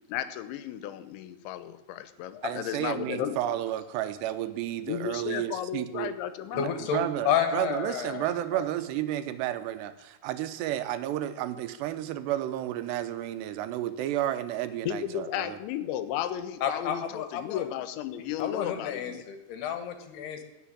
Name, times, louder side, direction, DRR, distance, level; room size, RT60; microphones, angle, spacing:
voice 1, 0.1-3.4 4.9-6.7 14.9-19.2, left 11 dB, 85° left, 13 dB, 3.2 m, -34 dB
voice 2, 2.4-6.1 6.5-15.6, right 12 dB, 80° right, 10 dB, 2.8 m, -32 dB
voice 3, 6.6-8.7 16.6-17.7 18.4-20.4, left 8 dB, 70° left, 8 dB, 3.3 m, -31 dB
15.5 x 7.0 x 9.9 m, 0.98 s
omnidirectional pair, 5.1 m